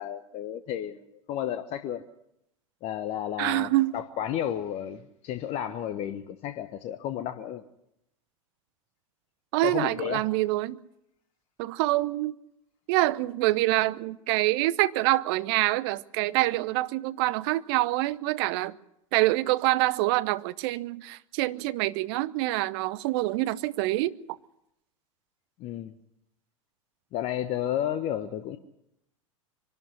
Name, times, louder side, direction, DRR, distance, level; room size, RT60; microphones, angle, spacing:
voice 1, 0.0-2.0 2.8-7.6 9.6-10.2 25.6-25.9 27.1-28.6, left 10 dB, 40° left, 1.1 m, -32 dB
voice 2, 3.4-3.9 9.5-10.8 11.6-12.3 12.9-18.8 19.1-24.1, right 18 dB, 45° right, 0.8 m, -26 dB
24.0 x 12.5 x 9.7 m
figure-of-eight pair, 85°, 17 cm